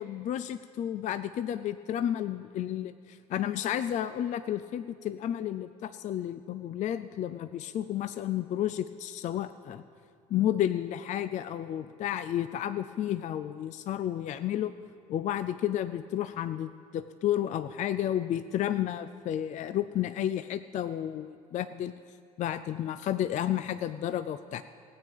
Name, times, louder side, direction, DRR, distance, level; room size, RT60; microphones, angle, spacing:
voice 1, 0.0-9.8 10.3-14.7 15.1-21.9 22.4-24.6, left 11 dB, 40° left, 12 dB, 0.4 m, -31 dB
16.0 x 8.8 x 5.3 m, 2.3 s
hypercardioid pair, 65°, 19 cm